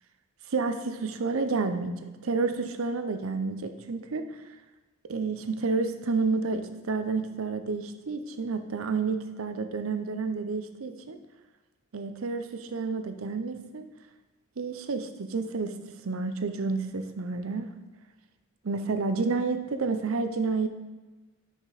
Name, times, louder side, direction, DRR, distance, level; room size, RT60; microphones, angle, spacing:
voice 1, 0.5-4.3 5.1-11.2 11.9-13.9 14.6-15.7 16.0-17.7 18.6-20.7, right 4 dB, 90° right, 8 dB, 0.6 m, -30 dB
6.0 x 5.1 x 4.1 m, 1.2 s
head